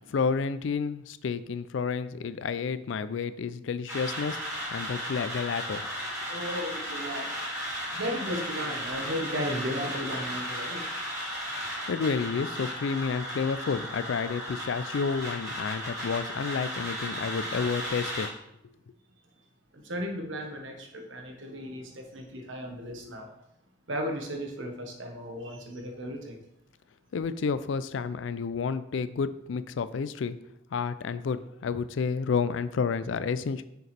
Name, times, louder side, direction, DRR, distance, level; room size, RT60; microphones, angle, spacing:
voice 1, 0.1-4.4 4.7-5.8 11.9-18.3 27.1-30.4 30.7-33.6, left 5 dB, 80° left, 14 dB, 0.4 m, -30 dB
sound 1, 3.9-18.3, equal, 15° right, 2.3 m, -35 dB
voice 2, 6.3-7.4 7.8-10.9 19.7-23.3 23.9-26.4, equal, 85° right, 3 dB, 1.3 m, -35 dB
6.6 x 6.6 x 3.4 m, 0.81 s
head